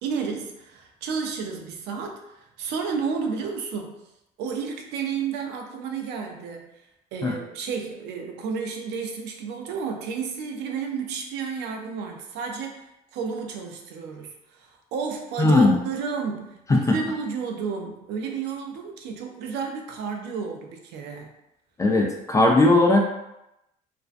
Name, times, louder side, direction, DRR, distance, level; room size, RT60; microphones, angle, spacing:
voice 1, 0.0-2.2 2.6-4.0 4.4-6.7 7.1-12.9 13.1-21.3, right 5 dB, 80° right, 2 dB, 0.5 m, -31 dB
voice 2, 15.4-15.8 16.7-16.8 21.8-23.0, left 2 dB, 20° left, 1 dB, 0.4 m, -18 dB
2.5 x 2.1 x 2.4 m, 0.87 s
cardioid pair, 110°, 17 cm